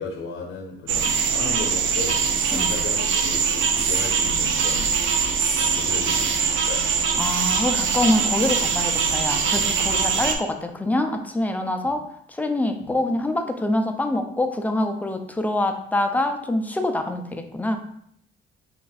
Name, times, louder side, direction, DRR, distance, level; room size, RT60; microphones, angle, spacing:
voice 1, 0.0-2.2 2.5-5.1 5.6-6.9 11.8-11.9 12.8-12.9, left 4 dB, 80° left, 0 dB, 0.8 m, -35 dB
sound 1, 0.9-10.4, right 6 dB, 75° right, 0.5 m, -22 dB
voice 2, 7.2-17.8, left 1 dB, 10° left, 6 dB, 0.4 m, -25 dB
3.5 x 2.5 x 4.0 m, 0.68 s
cardioid pair, 90°, 20 cm